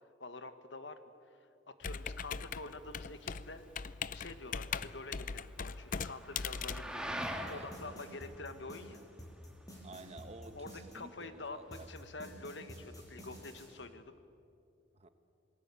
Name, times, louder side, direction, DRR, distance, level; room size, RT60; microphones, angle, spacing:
voice 1, 0.2-1.0 1.8-3.6 4.1-9.0 10.5-14.1, left 3 dB, 65° left, 10 dB, 1.4 m, -47 dB
Computer keyboard, 1.8-7.8, left 6 dB, 45° left, 0.5 m, -40 dB
sound 1, 2.0-11.9, equal, 5° right, 1.7 m, -47 dB
sound 2, 7.2-11.0 11.7-13.7, equal, 20° left, 6.9 m, -50 dB
voice 2, 7.4-7.8 9.8-11.9 14.9-15.1, right 2 dB, 35° right, 10 dB, 1.2 m, -52 dB
28.0 x 19.5 x 8.4 m, 2.6 s
head